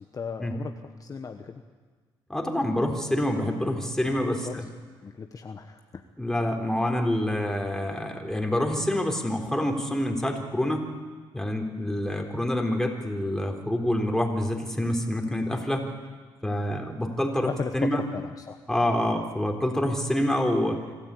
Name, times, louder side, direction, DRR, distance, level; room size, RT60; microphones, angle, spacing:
voice 1, 0.1-0.7 1.0-1.6 4.1-4.6 5.0-6.0 17.4-18.6, left 5 dB, 40° left, 6 dB, 1.2 m, -35 dB
voice 2, 2.3-4.6 6.2-10.8 11.3-15.8 16.4-18.0 18.7-20.8, left 1 dB, 5° left, 2 dB, 3.9 m, -27 dB
26.0 x 13.5 x 8.5 m, 1.5 s
cardioid pair, 80°, 9 cm